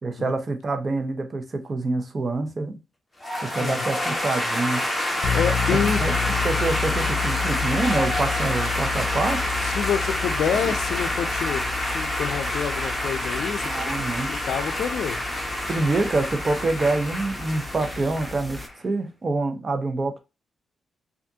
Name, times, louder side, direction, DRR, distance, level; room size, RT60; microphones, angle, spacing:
voice 1, 0.0-2.8 3.4-4.8 5.7-9.4 13.6-14.3 15.7-20.2, right 3 dB, 40° right, 0.7 m, -26 dB
sound 1, 3.2-18.7, left 1 dB, 15° left, 1.1 m, -28 dB
sound 2, 5.2-18.7, left 8 dB, 60° left, 0.7 m, -32 dB
voice 2, 5.3-6.0 9.6-14.0 14.3-15.2, left 7 dB, 80° left, 0.4 m, -28 dB
sound 3, 5.7-18.7, left 1 dB, 5° right, 0.5 m, -40 dB
3.5 x 2.5 x 2.7 m
cardioid pair, 85°, 0 cm